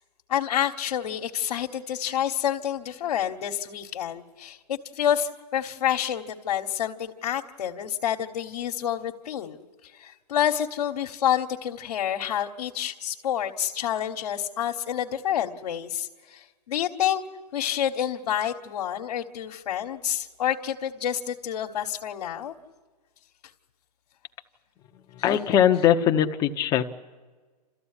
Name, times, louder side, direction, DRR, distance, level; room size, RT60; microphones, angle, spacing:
voice 1, 0.3-9.6 9.9-17.2 17.5-22.5, left 10 dB, 70° left, 2 dB, 1.4 m, -28 dB
voice 2, 25.1-27.0, left 10 dB, 15° left, 5 dB, 0.9 m, -21 dB
29.5 x 14.0 x 9.8 m, 1.4 s
hypercardioid pair, 160°, 21 cm